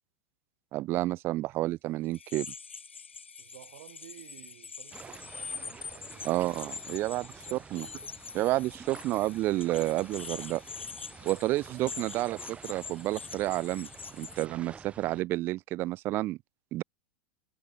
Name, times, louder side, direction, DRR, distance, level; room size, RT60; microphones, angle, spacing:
voice 1, 0.7-2.5 6.2-7.9 8.3-10.6 11.3-13.9 14.2-16.4 16.7-16.8, right 17 dB, 35° right, 0.3 m, -30 dB
sound 1, 2.1-14.5, left 5 dB, 90° left, 0.4 m, -44 dB
voice 2, 3.4-6.4 6.9-7.6 11.2-11.6, right 16 dB, 60° right, 1.9 m, -54 dB
sound 2, 4.9-15.2, right 6 dB, 20° right, 1.5 m, -49 dB
sound 3, 5.6-15.1, left 14 dB, 40° left, 7.0 m, -66 dB
figure-of-eight pair, 90°, 6 cm